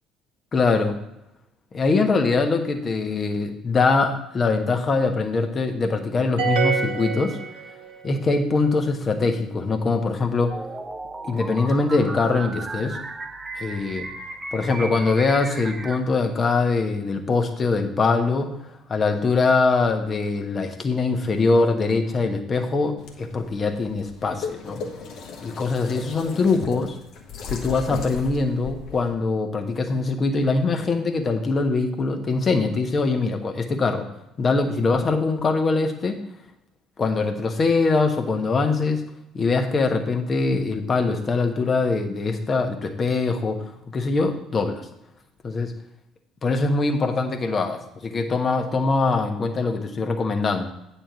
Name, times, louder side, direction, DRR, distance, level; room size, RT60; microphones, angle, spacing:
voice 1, 0.5-1.0 1.7-7.4 8.0-10.5 11.2-13.0 13.6-14.1 14.5-18.5 18.9-24.8 25.4-26.9 27.5-34.1 34.4-36.2 37.0-39.1 39.3-43.6 43.9-44.8 45.4-45.7 46.4-50.7, left 3 dB, 35° left, 5 dB, 1.3 m, -23 dB
sound 1, 6.4-8.1, right 5 dB, 70° right, 1.2 m, -26 dB
sound 2, 10.5-16.0, right 3 dB, 20° right, 0.9 m, -35 dB
sound 3, 23.0-29.1, left 5 dB, 55° left, 1.2 m, -36 dB
8.9 x 4.4 x 7.0 m, 0.87 s
figure-of-eight pair, 55°, 0 cm